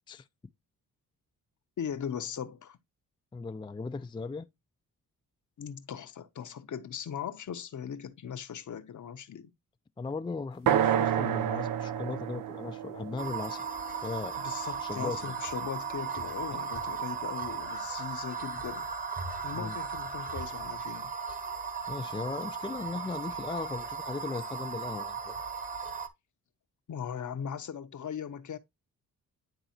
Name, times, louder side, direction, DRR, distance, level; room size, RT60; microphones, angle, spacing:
voice 1, 1.8-2.8 5.6-9.5 14.4-18.9 19.4-21.1 26.9-28.6, left 8 dB, 55° left, 0.8 m, -39 dB
voice 2, 3.3-4.5 10.0-13.7 14.0-14.4 14.8-15.4 19.5-19.8 21.9-25.4, left 4 dB, 15° left, 0.4 m, -37 dB
sound 1, 10.7-14.6, right 10 dB, 65° right, 0.5 m, -30 dB
sound 2, 13.2-26.1, right 5 dB, 25° right, 1.1 m, -36 dB
10.5 x 4.0 x 2.8 m
cardioid pair, 65°, 36 cm